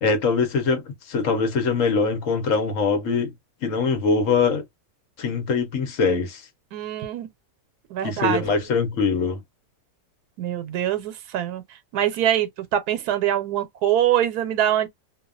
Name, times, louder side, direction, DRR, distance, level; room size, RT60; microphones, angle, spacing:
voice 1, 0.0-3.3 3.6-4.6 5.2-6.4 8.0-9.4, left 4 dB, 60° left, 1.1 m, -22 dB
voice 2, 6.7-7.3 7.9-8.6 10.4-11.6 11.9-14.9, right 11 dB, 85° right, 1.2 m, -24 dB
2.7 x 2.3 x 2.3 m
omnidirectional pair, 1.6 m